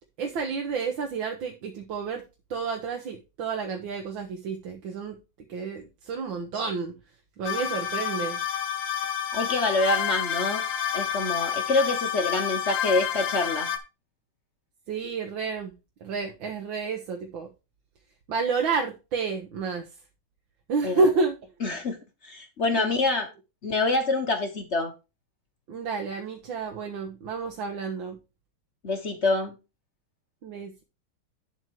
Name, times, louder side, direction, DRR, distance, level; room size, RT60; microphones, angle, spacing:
voice 1, 0.2-2.2 2.5-5.2 5.5-6.9 7.4-8.4 14.9-15.7 16.0-17.5 18.3-19.9 20.7-21.4 22.7-22.9 25.7-28.2 30.4-30.8, right 4 dB, 65° right, 1.7 m, -30 dB
sound 1, 7.4-13.8, left 9 dB, 65° left, 1.7 m, -29 dB
voice 2, 9.3-10.6 10.9-13.7 20.8-21.0 21.6-22.0 22.2-23.3 23.6-24.9 28.8-29.5, left 2 dB, 45° left, 0.9 m, -26 dB
11.0 x 4.5 x 4.6 m
omnidirectional pair, 2.4 m